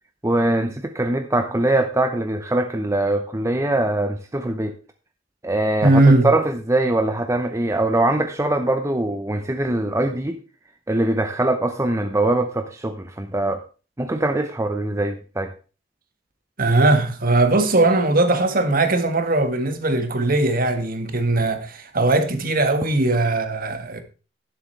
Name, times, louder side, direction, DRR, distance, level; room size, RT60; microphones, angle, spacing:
voice 1, 0.2-4.7 5.4-10.4 10.9-13.6 14.0-15.5, right 2 dB, 15° right, 0.7 m, -22 dB
voice 2, 5.8-6.3 16.6-24.0, right 2 dB, 50° right, 1.6 m, -19 dB
11.5 x 11.0 x 3.3 m
head